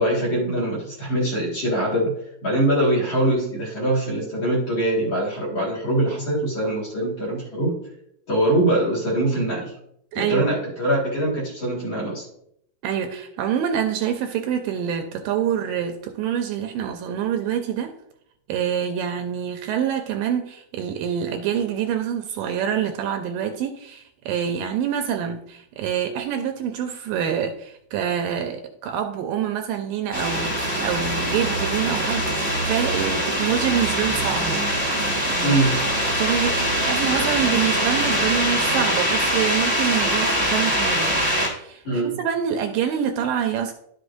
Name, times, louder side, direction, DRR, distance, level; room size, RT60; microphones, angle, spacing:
voice 1, 0.0-2.1 2.4-7.7 8.3-9.7 10.1-12.2 35.4-35.8 41.8-42.2, right 1 dB, 40° left, -5 dB, 2.1 m, -23 dB
voice 2, 10.1-10.6 12.8-17.9 18.5-34.6 35.3-35.6 36.1-41.1 41.5-43.7, right 8 dB, 80° right, 5 dB, 2.1 m, -26 dB
sound 1, 30.1-41.5, equal, 5° left, 1.8 m, -23 dB
11.5 x 6.4 x 2.6 m, 0.72 s
omnidirectional pair, 4.2 m